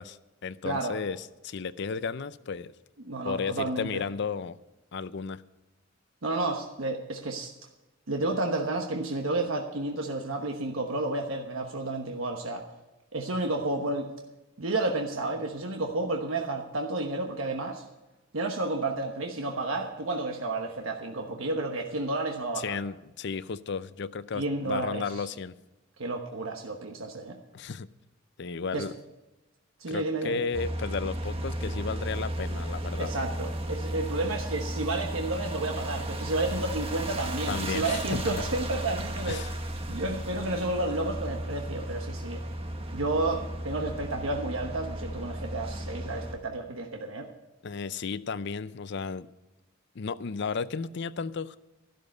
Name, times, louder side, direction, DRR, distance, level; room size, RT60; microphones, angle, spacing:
voice 1, 0.0-2.7 3.2-4.6 4.9-5.4 22.6-25.5 27.5-27.9 28.4-28.9 29.9-33.1 37.5-38.2 39.3-39.5 47.6-49.3 49.9-51.6, left 5 dB, 60° left, 15 dB, 0.5 m, -34 dB
voice 2, 0.6-1.0 3.0-4.0 6.2-7.5 8.1-12.7 13.1-14.1 14.6-17.8 18.3-22.8 24.3-25.2 26.0-27.4 28.7-28.9 29.8-30.4 33.0-39.4 39.9-42.4 42.9-47.3, right 2 dB, 85° right, 3 dB, 1.2 m, -31 dB
sound 1, 30.5-46.3, right 1 dB, 30° right, 1.4 m, -34 dB
13.0 x 12.0 x 5.4 m, 1.0 s
head